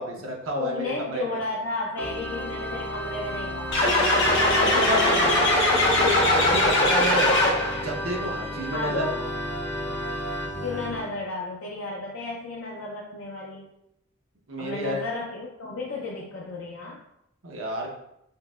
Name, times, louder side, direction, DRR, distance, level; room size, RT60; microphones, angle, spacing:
voice 1, 0.0-1.4 4.7-5.2 6.0-7.4 7.8-9.0 14.5-15.0 17.4-17.9, equal, 85° right, 0 dB, 0.8 m, -30 dB
voice 2, 0.6-3.9 4.6-5.4 8.7-9.2 10.6-13.7 14.6-17.0, left 2 dB, 85° left, -2 dB, 0.5 m, -33 dB
Organ, 2.0-11.1, equal, 10° left, 0.4 m, -32 dB
sound 1, 3.7-7.9, left 1 dB, 65° left, 0.9 m, -21 dB
5.4 x 2.1 x 2.3 m, 0.80 s
head